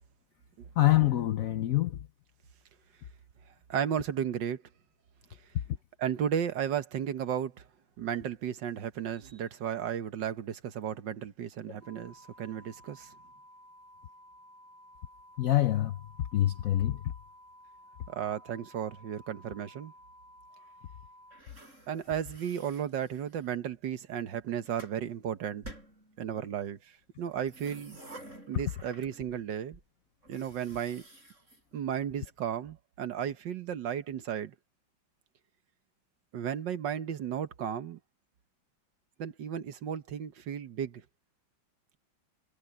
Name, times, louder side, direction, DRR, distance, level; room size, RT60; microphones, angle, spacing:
voice 1, 0.8-2.0 15.4-17.1, left 14 dB, 75° left, 0.7 m, -26 dB
voice 2, 3.7-4.6 6.0-7.6 8.0-13.1 18.1-19.9 21.9-25.6 26.2-28.0 28.5-29.8 30.3-31.0 31.7-34.5 36.3-38.0 39.2-41.0, right 9 dB, 65° right, 1.7 m, -34 dB
sound 1, 11.8-21.4, equal, ahead, 6.6 m, -55 dB
sound 2, 21.3-23.6 24.3-25.0 25.6-26.5 27.3-29.4 29.7-29.8 30.2-32.3, right 1 dB, 35° right, 7.8 m, -51 dB
omnidirectional pair, 2.2 m